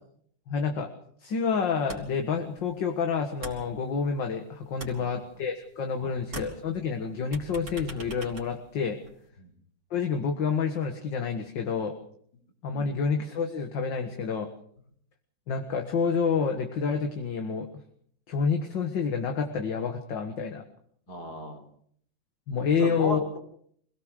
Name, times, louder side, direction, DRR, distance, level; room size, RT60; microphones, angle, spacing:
voice 1, 0.5-0.9 1.2-9.0 9.9-12.0 12.6-14.5 15.5-17.7 18.3-20.6 22.5-23.2, left 5 dB, 65° left, 4 dB, 2.3 m, -28 dB
sound 1, 1.9-2.3 2.6-4.3 4.6-6.0 6.2-9.3, right 2 dB, 35° right, 3.5 m, -43 dB
voice 2, 21.1-21.6 22.8-23.4, left 1 dB, 50° left, 3 dB, 4.2 m, -36 dB
26.5 x 17.0 x 6.5 m, 0.65 s
omnidirectional pair, 2.1 m